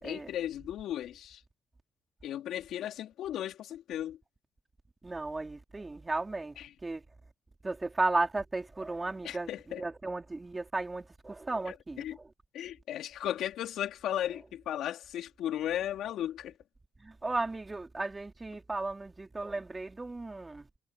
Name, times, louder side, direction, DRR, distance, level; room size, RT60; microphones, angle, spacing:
voice 1, 0.0-1.4 2.2-4.2 6.6-6.7 9.2-9.8 11.7-12.2 12.5-16.5, left 11 dB, 80° left, 4.2 m, -36 dB
voice 2, 5.0-6.6 6.8-7.0 7.6-9.5 9.8-12.3 17.0-20.7, right 2 dB, 20° right, 4.5 m, -34 dB
cardioid pair, 90°, 0 cm